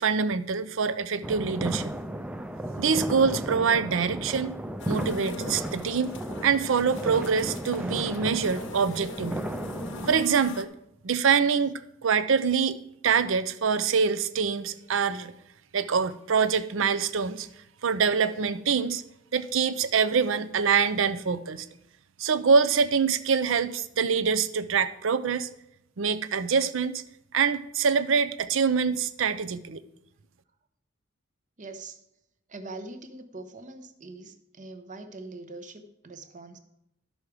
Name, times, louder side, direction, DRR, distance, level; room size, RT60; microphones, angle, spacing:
voice 1, 0.0-2.0 2.8-4.5 4.9-6.1 6.4-9.4 10.1-10.7 11.0-12.8 13.0-15.3 15.7-17.5 17.8-19.0 19.3-21.7 22.2-25.5 26.0-27.0 27.3-29.8, right 6 dB, 65° right, 14 dB, 0.5 m, -25 dB
sound 1, 1.2-10.3, right 1 dB, 5° right, 0.4 m, -34 dB
sound 2, 4.8-10.6, left 3 dB, 60° left, 0.7 m, -42 dB
voice 2, 31.6-32.0 32.5-36.6, right 2 dB, 40° right, 8 dB, 0.8 m, -43 dB
12.0 x 6.3 x 4.8 m, 0.81 s
head